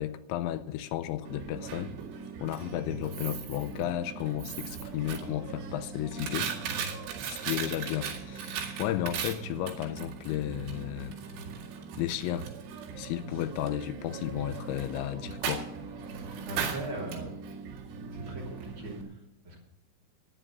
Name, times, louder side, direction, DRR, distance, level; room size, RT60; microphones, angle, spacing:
voice 1, 0.0-1.9 2.4-6.5 6.8-6.9 7.3-11.2 12.0-12.5 13.0-15.7, left 13 dB, 85° left, 2.8 m, -33 dB
Coin (dropping), 1.3-19.0, right 6 dB, 80° right, 4.6 m, -38 dB
voice 2, 16.4-17.4 18.1-19.6, right 1 dB, 30° right, 3.1 m, -40 dB
12.5 x 10.0 x 6.3 m
omnidirectional pair, 5.4 m